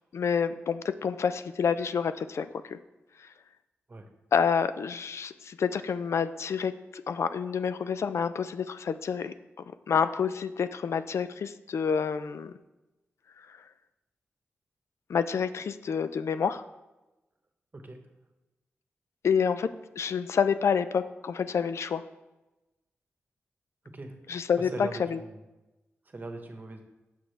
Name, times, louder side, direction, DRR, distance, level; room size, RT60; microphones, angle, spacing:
voice 1, 0.1-2.8 3.2-3.3 4.3-9.3 9.9-12.5 13.4-13.6 15.1-16.6 19.2-19.7 20.0-22.0 24.3-25.2, left 6 dB, 75° left, 12 dB, 0.4 m, -28 dB
voice 2, 23.9-24.4 24.7-25.4 26.1-26.8, right 2 dB, 40° right, 5 dB, 1.1 m, -41 dB
6.7 x 6.1 x 3.3 m, 1.0 s
cardioid pair, 55°, 5 cm